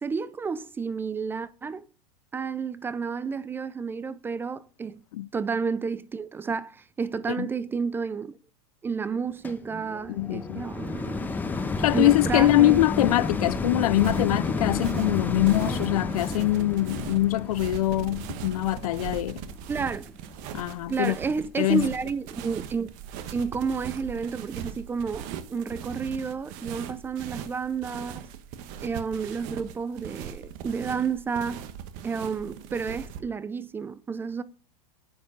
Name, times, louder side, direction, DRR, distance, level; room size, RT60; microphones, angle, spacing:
voice 1, 0.0-1.9 2.3-5.0 5.3-8.3 8.8-11.3 11.9-12.8 19.7-20.0 20.9-22.9 23.3-28.3 28.8-31.6 32.0-34.4, right 5 dB, 10° right, 0.4 m, -31 dB
sound 1, 9.4-20.7 21.3-21.4, left 3 dB, 10° left, 0.9 m, -31 dB
voice 2, 10.1-10.7 11.8-19.5 20.5-21.2 21.6-21.9, left 15 dB, 80° left, 0.6 m, -23 dB
sound 2, 13.9-33.2, right 9 dB, 45° right, 1.2 m, -40 dB
10.0 x 7.0 x 5.1 m
supercardioid pair, 145°, 19 cm